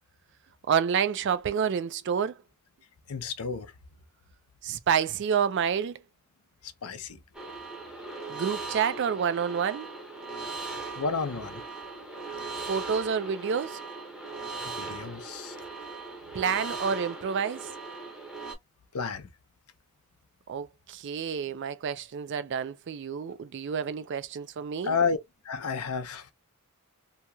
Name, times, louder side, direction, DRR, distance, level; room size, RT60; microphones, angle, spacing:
voice 1, 0.7-2.4 4.6-6.0 8.3-9.9 12.6-13.8 16.3-17.7 20.5-25.0, right 7 dB, 55° right, 0.4 m, -29 dB
voice 2, 3.1-3.7 6.6-7.2 11.0-11.6 14.8-15.6 18.9-19.3 24.8-25.2 25.4-26.3, left 5 dB, 90° left, 0.6 m, -31 dB
sound 1, 7.3-18.6, right 3 dB, 5° right, 0.7 m, -39 dB
2.8 x 2.8 x 2.3 m
head